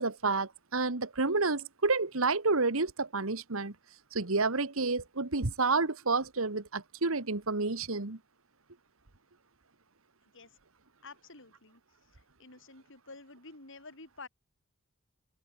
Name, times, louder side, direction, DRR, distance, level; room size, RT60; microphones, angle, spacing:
voice 1, 0.0-3.7 4.1-8.2, right 3 dB, 70° right, 1.7 m, -30 dB
voice 2, 11.0-11.8 12.1-14.3, left 3 dB, 60° left, 6.7 m, -50 dB
head